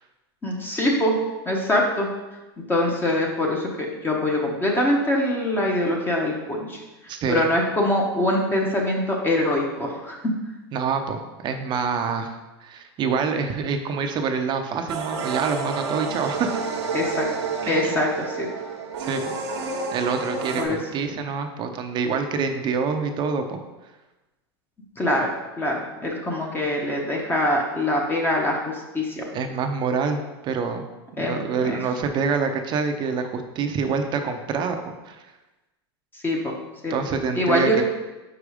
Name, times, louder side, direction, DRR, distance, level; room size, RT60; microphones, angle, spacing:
voice 1, 0.4-1.2 1.4-2.1 2.7-6.8 7.3-10.3 16.9-17.3 17.7-18.5 20.6-20.8 25.0-25.3 25.6-29.2 31.2-31.8 36.2-36.5 36.8-36.9 37.3-37.8, left 1 dB, 15° left, -1 dB, 1.0 m, -23 dB
voice 2, 7.1-7.5 10.7-16.7 17.6-18.0 19.0-19.3 19.9-23.6 29.3-30.2 30.4-30.8 31.2-35.2 36.9-37.8, right 5 dB, 35° right, 6 dB, 0.7 m, -26 dB
sound 1, 14.9-20.6, right 5 dB, 90° right, 1.1 m, -29 dB
4.9 x 4.6 x 5.0 m, 1.1 s
supercardioid pair, 125°, 14 cm